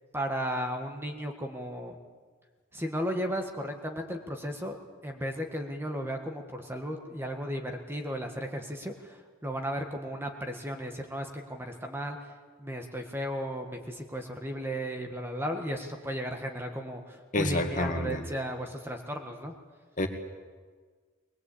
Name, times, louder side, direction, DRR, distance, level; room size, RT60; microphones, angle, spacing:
voice 1, 0.1-1.9 2.7-4.8 5.0-12.2 12.6-19.5, equal, 10° right, 3 dB, 1.6 m, -35 dB
voice 2, 17.3-18.2 20.0-20.1, left 1 dB, 40° left, 4 dB, 2.1 m, -28 dB
21.5 x 21.0 x 8.6 m, 1.5 s
head